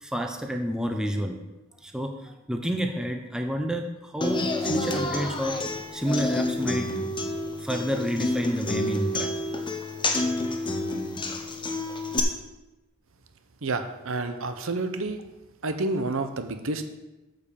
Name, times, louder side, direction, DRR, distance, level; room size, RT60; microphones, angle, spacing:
voice 1, 0.0-1.4 1.8-6.9 7.6-9.3, equal, 5° right, 4 dB, 0.8 m, -29 dB
Human voice / Acoustic guitar, 4.2-12.2, left 2 dB, 25° left, 1.0 m, -29 dB
voice 2, 13.6-15.2 15.6-16.8, right 2 dB, 70° right, 8 dB, 0.8 m, -29 dB
8.7 x 5.4 x 7.0 m, 1.1 s
head